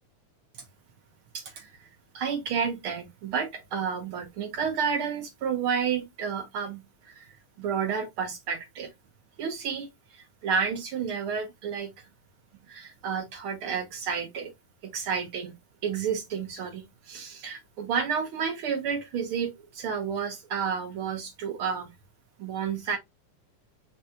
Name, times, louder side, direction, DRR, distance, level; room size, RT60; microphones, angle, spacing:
voice 1, 1.3-1.7 2.1-7.3 7.6-8.9 9.4-11.9 12.7-14.5 14.8-15.6 15.8-21.9 22.4-23.0, right 6 dB, 70° right, 1.3 m, -31 dB
4.7 x 4.4 x 2.2 m
omnidirectional pair, 3.5 m